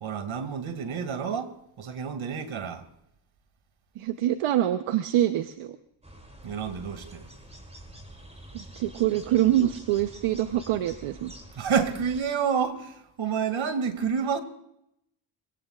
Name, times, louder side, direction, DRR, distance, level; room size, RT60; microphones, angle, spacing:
voice 1, 0.0-1.5 1.8-2.8 6.4-7.3 11.6-14.4, right 6 dB, 70° right, 2.4 m, -29 dB
voice 2, 4.0-5.8 8.5-11.3, right 12 dB, 85° right, 0.9 m, -25 dB
sound 1, 6.0-12.2, right 1 dB, 15° right, 5.5 m, -47 dB
25.5 x 18.0 x 2.4 m
supercardioid pair, 60°, 49 cm